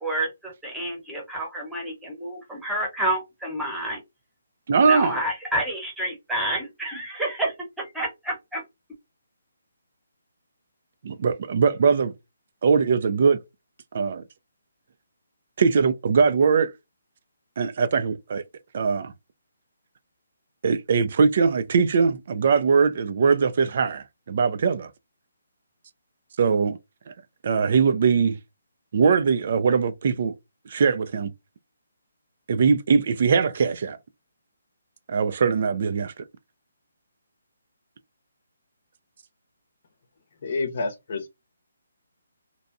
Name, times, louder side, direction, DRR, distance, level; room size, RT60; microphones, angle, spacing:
voice 1, 0.0-4.0 4.8-8.6, right 1 dB, 5° right, 0.9 m, -29 dB
voice 2, 4.7-5.2 11.0-12.1 12.6-13.4 13.9-14.2 15.6-16.7 17.6-18.4 18.7-19.1 20.6-24.9 26.4-26.8 27.1-27.2 27.4-28.4 28.9-30.3 30.7-31.3 32.5-34.0 35.1-36.1, right 5 dB, 50° right, 0.3 m, -21 dB
voice 3, 40.4-41.3, left 3 dB, 50° left, 0.7 m, -28 dB
2.6 x 2.2 x 2.5 m
hypercardioid pair, 155°, 0 cm